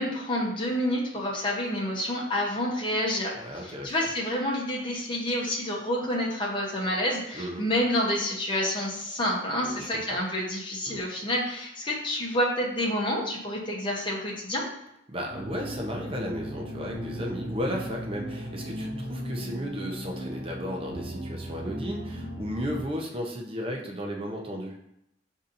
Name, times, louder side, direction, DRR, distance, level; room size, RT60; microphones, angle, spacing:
voice 1, 0.0-14.7, left 1 dB, 25° left, -3 dB, 0.8 m, -28 dB
voice 2, 3.4-3.9 7.3-7.6 9.6-9.9 10.9-11.0 15.1-24.8, equal, 25° right, 0 dB, 0.5 m, -34 dB
sound 1, 15.3-22.8, equal, 55° right, 1.3 m, -37 dB
7.0 x 2.7 x 2.6 m, 0.81 s
head